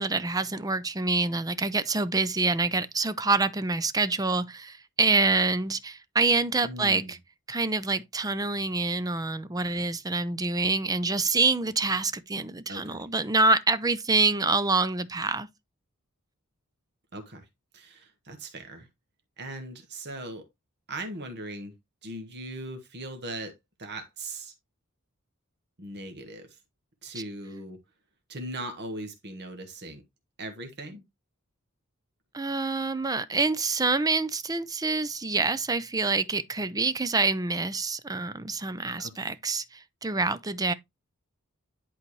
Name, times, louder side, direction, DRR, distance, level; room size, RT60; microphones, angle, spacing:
voice 1, 0.0-7.2 7.5-15.5 27.1-27.2 32.3-40.7, right 3 dB, 15° right, 0.5 m, -26 dB
voice 2, 6.6-7.2 12.7-13.0 17.1-17.4 17.7-18.9 19.4-20.5 20.9-21.7 22.0-24.5 25.8-26.6 27.0-27.8 28.3-30.0 30.4-31.0 39.0-39.3, right 1 dB, 50° right, 1.5 m, -39 dB
11.0 x 4.0 x 3.1 m
head